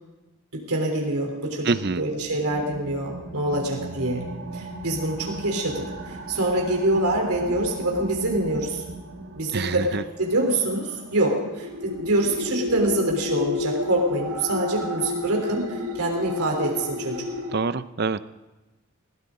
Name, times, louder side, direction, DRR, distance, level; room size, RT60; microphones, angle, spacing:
voice 1, 0.5-4.3 4.5-8.8 9.4-9.9 10.2-15.7 16.0-17.2, right 1 dB, 90° right, 0 dB, 3.6 m, -25 dB
voice 2, 1.6-2.0 9.5-10.0 17.5-18.2, right 4 dB, 45° right, 14 dB, 0.6 m, -25 dB
outer space air, 2.1-17.6, left 2 dB, 65° right, 2.2 m, -34 dB
22.0 x 17.0 x 3.8 m, 1.1 s
head